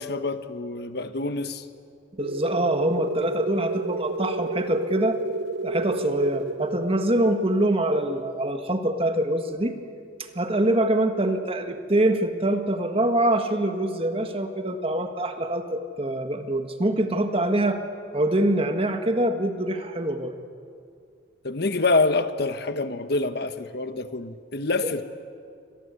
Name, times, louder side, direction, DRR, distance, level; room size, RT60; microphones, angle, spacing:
voice 1, 0.0-1.6 21.4-25.0, left 3 dB, 60° left, 1.2 m, -26 dB
voice 2, 2.2-5.2 5.6-9.7 10.3-17.8 18.1-20.3 24.8-24.9, right 1 dB, 30° right, 1.7 m, -24 dB
sound 1, 2.2-10.5, right 3 dB, 70° right, 0.7 m, -32 dB
29.0 x 25.0 x 8.4 m
head